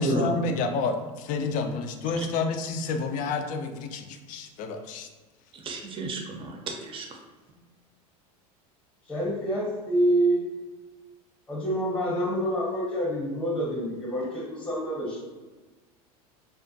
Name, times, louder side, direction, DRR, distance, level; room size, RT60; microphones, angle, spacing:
voice 1, 0.0-5.1, left 4 dB, 45° left, 6 dB, 0.4 m, -29 dB
voice 2, 5.5-7.2, right 1 dB, 25° right, 2 dB, 0.5 m, -31 dB
voice 3, 9.1-10.4 11.5-15.2, right 1 dB, 5° left, -4 dB, 0.8 m, -27 dB
2.4 x 2.1 x 2.6 m, 1.3 s
hypercardioid pair, 90°, 19 cm